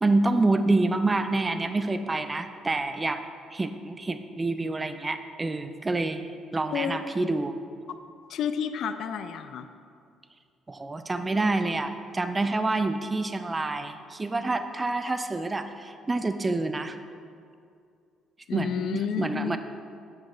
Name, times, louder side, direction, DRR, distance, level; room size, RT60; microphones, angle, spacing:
voice 1, 0.0-3.2 3.5-6.2 6.5-7.5 10.7-17.0 18.5-19.6, right 2 dB, 20° right, 9 dB, 0.5 m, -27 dB
voice 2, 8.3-9.7 18.5-19.6, left 8 dB, 55° left, 9 dB, 0.3 m, -30 dB
10.0 x 7.8 x 2.4 m, 2.4 s
figure-of-eight pair, 45°, 0 cm